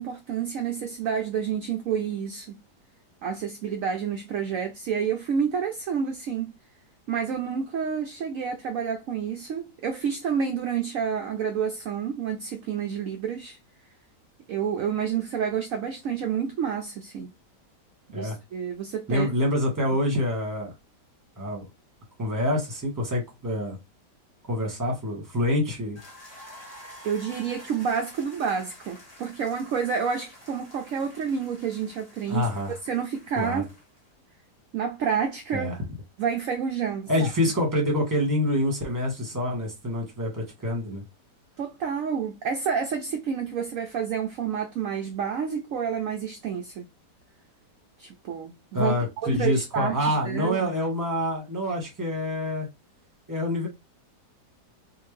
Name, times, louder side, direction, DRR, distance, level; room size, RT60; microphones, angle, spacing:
voice 1, 0.0-2.6 3.2-6.5 7.1-13.6 14.5-17.3 18.1-19.3 27.0-32.5 32.8-33.7 34.7-35.7 36.2-37.1 41.6-46.9 48.0-50.7, right 7 dB, 65° right, 0.8 m, -29 dB
voice 2, 19.1-20.7 21.4-21.6 22.2-23.8 24.5-26.0 32.3-32.8 33.4-33.6 35.5-35.8 37.1-41.0 48.7-52.7 53.3-53.7, left 1 dB, 10° right, 1.2 m, -26 dB
sound 1, 26.0-34.1, equal, 25° left, 1.2 m, -49 dB
3.6 x 2.5 x 3.1 m
omnidirectional pair, 1.8 m